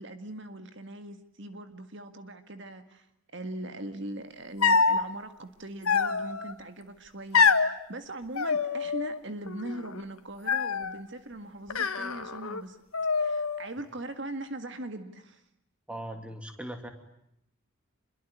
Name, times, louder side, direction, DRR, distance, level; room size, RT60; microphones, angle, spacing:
voice 1, 0.0-12.8 13.1-15.4, right 1 dB, 55° right, 8 dB, 1.8 m, -40 dB
sound 1, 4.6-5.1 5.9-6.5 7.3-7.7 8.4-9.2 9.5-10.0 10.5-11.0 11.7-12.6 12.9-13.7, left 5 dB, 90° left, 1.7 m, -26 dB
voice 2, 15.9-16.9, right 1 dB, 5° right, 6 dB, 2.6 m, -39 dB
28.0 x 22.5 x 9.5 m, 0.78 s
head